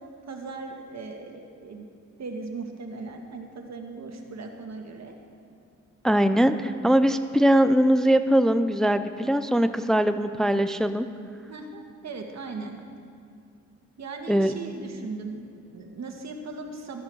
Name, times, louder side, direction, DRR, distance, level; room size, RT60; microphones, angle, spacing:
voice 1, 0.0-1.9 2.2-5.2 11.5-12.8 14.0-17.0, right 3 dB, 60° right, 3 dB, 1.7 m, -38 dB
voice 2, 6.0-11.1 14.3-14.5, equal, ahead, 10 dB, 0.5 m, -21 dB
14.5 x 12.0 x 4.7 m, 2.3 s
cardioid pair, 75°, 30 cm